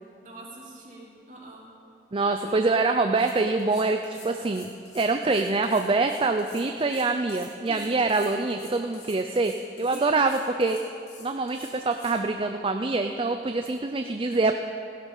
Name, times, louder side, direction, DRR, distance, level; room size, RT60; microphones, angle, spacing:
voice 1, 0.2-1.6 2.4-2.5 7.7-8.0 9.9-10.2, right 2 dB, 45° right, -4 dB, 3.1 m, -43 dB
voice 2, 2.1-4.7 4.9-10.8 11.2-14.5, right 3 dB, 30° right, 6 dB, 0.4 m, -25 dB
sound 1, 2.9-3.0 3.1-12.2, left 5 dB, 70° left, 3.1 m, -48 dB
16.0 x 12.0 x 5.4 m, 2.5 s
head